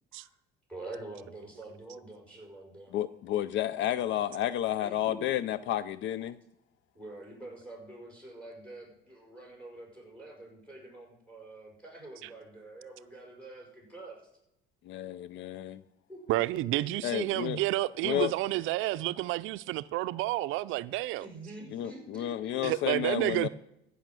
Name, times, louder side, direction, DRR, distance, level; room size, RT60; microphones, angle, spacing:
voice 1, 0.7-2.9 4.8-5.2 7.0-14.2 16.1-16.4 16.7-16.8 21.2-22.9, right 1 dB, 5° left, 5.6 m, -46 dB
voice 2, 2.9-6.4 14.9-15.8 17.0-17.6 18.1-18.3 21.7-23.5, left 12 dB, 65° left, 0.4 m, -31 dB
voice 3, 16.3-21.3 22.6-23.5, right 17 dB, 75° right, 0.4 m, -30 dB
15.0 x 5.6 x 7.6 m
cardioid pair, 120°, 21 cm